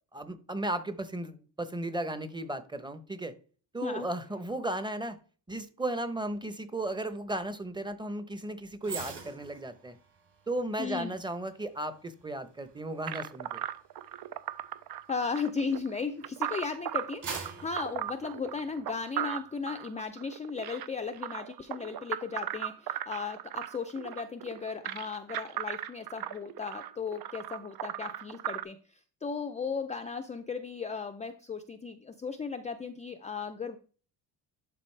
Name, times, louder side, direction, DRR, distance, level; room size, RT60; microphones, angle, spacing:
voice 1, 0.1-3.3 3.7-5.2 5.5-10.0 10.5-13.6, right 1 dB, 10° right, 11 dB, 0.9 m, -35 dB
sound 1, 8.8-16.2 16.7-19.0 19.4-19.6, right 5 dB, 45° right, 3.7 m, -46 dB
voice 2, 10.8-11.1 15.1-33.8, left 5 dB, 15° left, 8 dB, 0.5 m, -36 dB
sound 2, 13.1-28.6, right 12 dB, 60° right, 0.7 m, -37 dB
11.5 x 4.2 x 3.3 m, 0.39 s
cardioid pair, 110°, 42 cm